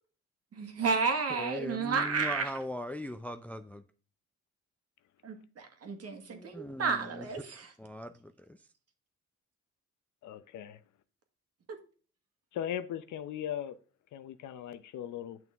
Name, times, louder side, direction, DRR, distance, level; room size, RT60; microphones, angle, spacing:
voice 1, 0.5-2.5 5.2-7.7 11.7-11.8, right 5 dB, 55° right, 1.7 m, -32 dB
voice 2, 1.4-3.8 6.3-7.0 7.8-8.1, left 1 dB, 5° left, 0.4 m, -39 dB
voice 3, 10.2-10.8 12.5-13.8 14.1-15.4, left 10 dB, 75° left, 0.7 m, -38 dB
9.0 x 6.0 x 3.5 m
cardioid pair, 90°, 30 cm